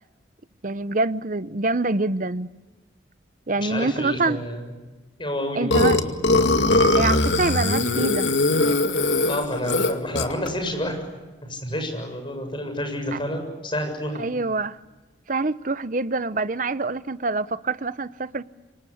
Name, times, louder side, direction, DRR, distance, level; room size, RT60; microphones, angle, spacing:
voice 1, 0.6-2.5 3.5-4.4 5.5-6.0 7.0-8.3 13.1-13.2 14.2-14.8 15.3-18.4, right 3 dB, 40° right, 0.8 m, -25 dB
voice 2, 3.5-4.6 5.2-6.1 9.2-11.0 11.4-14.3, left 1 dB, 25° left, 7.3 m, -29 dB
Burping eructation, 5.7-10.5, left 2 dB, 70° left, 2.3 m, -20 dB
27.5 x 25.0 x 8.6 m
head